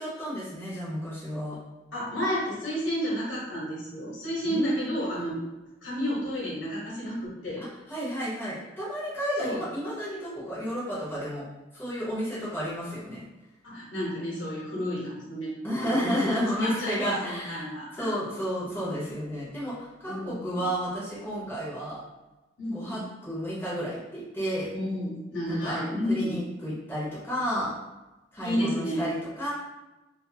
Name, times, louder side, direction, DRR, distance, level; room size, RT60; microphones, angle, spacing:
voice 1, 0.0-1.6 4.4-5.4 7.9-11.5 11.7-13.3 15.6-17.6 18.0-22.0 22.7-24.7 25.5-25.8 26.1-27.7 28.3-29.5, equal, 10° left, -9 dB, 0.7 m, -32 dB
voice 2, 1.9-5.4 5.8-7.6 9.4-9.6 13.6-15.5 15.8-18.1 20.1-20.6 22.6-23.1 24.7-26.4 28.4-29.1, equal, 70° left, -6 dB, 1.0 m, -31 dB
2.5 x 2.4 x 2.6 m, 1.1 s
head